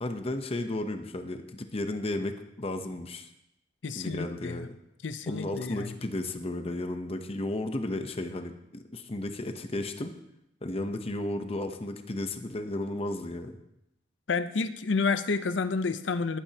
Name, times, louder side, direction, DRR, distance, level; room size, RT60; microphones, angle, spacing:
voice 1, 0.0-3.3 3.9-4.8 5.3-10.1 10.6-13.6, left 1 dB, 30° left, 7 dB, 0.8 m, -34 dB
voice 2, 3.8-4.6 5.0-5.9 14.3-16.4, left 4 dB, 70° left, 12 dB, 0.6 m, -30 dB
19.5 x 8.8 x 2.9 m, 0.84 s
head